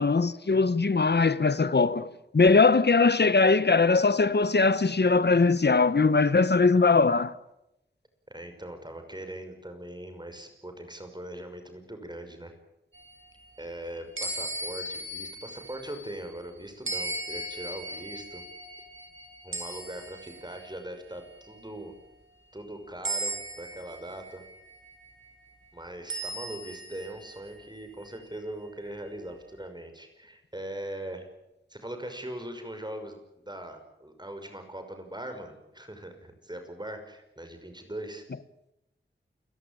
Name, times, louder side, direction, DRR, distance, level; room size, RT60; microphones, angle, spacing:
voice 1, 0.0-7.3, left 4 dB, 60° left, 1.2 m, -21 dB
voice 2, 8.3-12.5 13.6-18.4 19.4-21.9 22.5-24.4 25.7-31.3 31.7-33.2 33.4-38.2, right 1 dB, 20° right, 6.0 m, -40 dB
sound 1, 12.9-16.4 16.9-20.8 21.3-21.6 23.0-25.1 26.1-28.1, right 1 dB, 85° right, 6.2 m, -38 dB
29.5 x 17.5 x 9.1 m
wide cardioid pair, 60°, 20 cm